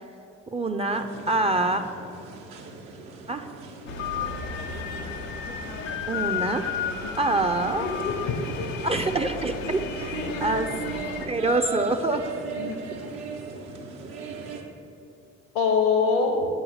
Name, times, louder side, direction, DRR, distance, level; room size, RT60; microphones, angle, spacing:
voice 1, 0.5-1.8 3.3-3.5 6.1-6.8 7.2-7.9 8.8-9.8 10.4-10.7 11.3-12.3, right 2 dB, 15° right, 6 dB, 0.4 m, -25 dB
sound 1, 0.9-14.6, right 4 dB, 75° right, 0.8 m, -39 dB
sound 2, 3.9-11.3, left 7 dB, 90° left, 0.5 m, -33 dB
voice 2, 7.6-8.7 10.0-10.4 12.5-12.8 15.5-16.5, left 5 dB, 70° left, 3 dB, 0.8 m, -25 dB
8.4 x 3.2 x 6.3 m, 2.8 s
figure-of-eight pair, 45°, 37 cm